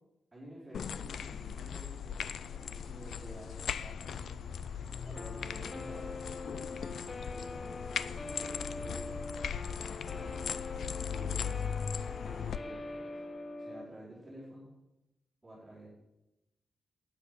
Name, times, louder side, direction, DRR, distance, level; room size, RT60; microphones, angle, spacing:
voice 1, 0.3-4.4 4.8-6.1 7.3-7.8 8.1-9.2 9.6-10.4 11.0-11.9 12.3-13.2 13.6-14.7 15.4-15.9, right 1 dB, 10° right, -8 dB, 4.7 m, -51 dB
sound 1, 0.7-12.6, left 7 dB, 70° left, 0.5 m, -39 dB
Guitar, 5.2-13.9, left 2 dB, 25° left, 0.6 m, -43 dB
10.0 x 9.9 x 6.7 m, 0.93 s
wide cardioid pair, 150°, 0 cm